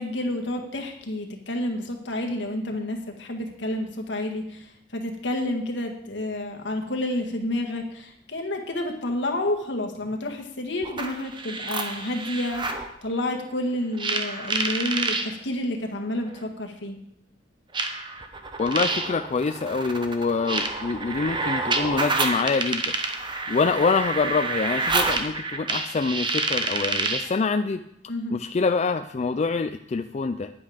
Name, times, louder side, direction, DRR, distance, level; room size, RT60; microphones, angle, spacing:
voice 1, 0.0-17.0 28.1-28.4, left 1 dB, 75° left, 2 dB, 1.7 m, -30 dB
sound 1, 10.8-12.9 14.0-15.3 16.4-16.5 17.7-27.3, right 3 dB, 25° right, 1.0 m, -28 dB
voice 2, 18.6-22.9 23.5-27.8 28.3-30.5, left 4 dB, 35° left, 8 dB, 0.4 m, -25 dB
10.0 x 8.6 x 5.1 m, 0.78 s
head